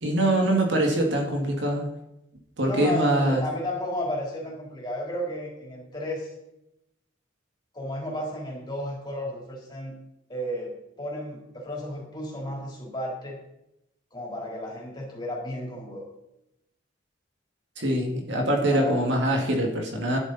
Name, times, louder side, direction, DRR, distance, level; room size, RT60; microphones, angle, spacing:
voice 1, 0.0-1.9 2.6-3.4 17.8-20.2, right 1 dB, 65° right, 1 dB, 2.3 m, -24 dB
voice 2, 2.6-6.3 7.7-10.0 10.3-13.4 14.1-16.0 18.7-19.0, equal, 20° left, -3 dB, 3.8 m, -33 dB
12.5 x 11.0 x 4.2 m, 0.86 s
head